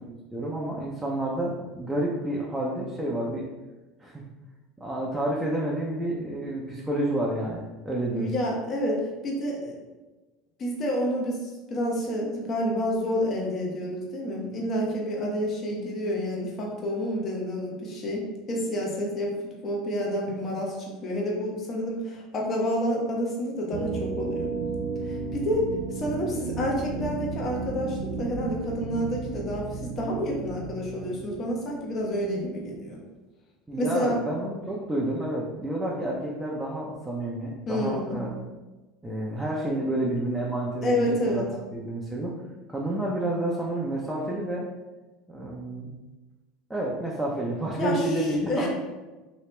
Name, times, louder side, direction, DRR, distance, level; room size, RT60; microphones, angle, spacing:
voice 1, 0.3-3.4 4.0-4.2 4.8-8.3 33.7-38.4 39.0-42.4 42.7-44.6 45.3-45.9 46.7-48.7, right 1 dB, 10° right, -5 dB, 0.6 m, -29 dB
voice 2, 8.1-9.7 10.6-19.3 19.6-24.5 25.1-33.0 33.8-34.2 37.7-38.2 40.8-41.5 47.8-48.7, equal, 40° left, -2 dB, 0.9 m, -29 dB
sound 1, 23.7-32.4, right 4 dB, 70° right, 0.3 m, -34 dB
3.0 x 2.8 x 3.2 m, 1.2 s
supercardioid pair, 95°, 0 cm